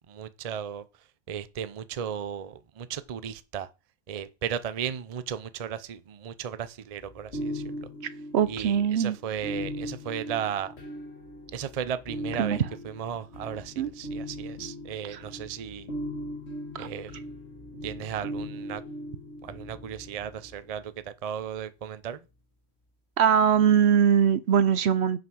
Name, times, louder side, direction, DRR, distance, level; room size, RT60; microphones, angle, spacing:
voice 1, 0.1-0.8 1.3-3.7 4.1-7.6 8.5-10.7 11.5-12.6 12.8-15.9 16.8-17.1 17.8-18.8 19.4-22.2, right 8 dB, 40° right, 0.6 m, -35 dB
sound 1, 7.0-20.8 23.5-23.8, equal, 60° left, 2.1 m, -39 dB
voice 2, 8.3-9.2 12.4-12.6 13.8-13.9 15.1-15.2 16.7-16.9 23.2-25.2, right 8 dB, 65° right, 0.9 m, -22 dB
7.7 x 5.8 x 6.2 m
omnidirectional pair, 1.2 m